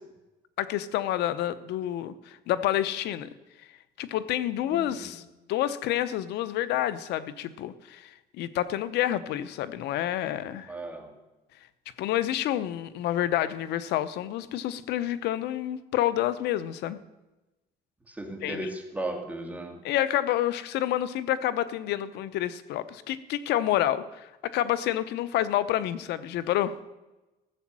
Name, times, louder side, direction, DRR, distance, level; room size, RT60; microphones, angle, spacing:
voice 1, 0.6-3.3 4.0-5.2 5.5-10.7 12.0-17.0 18.4-18.7 19.8-26.8, left 12 dB, 80° left, 14 dB, 0.8 m, -28 dB
voice 2, 4.7-5.1 10.7-11.1 18.1-19.8, right 1 dB, 10° right, 3 dB, 2.3 m, -36 dB
14.5 x 7.1 x 7.5 m, 1.0 s
cardioid pair, 110°, 17 cm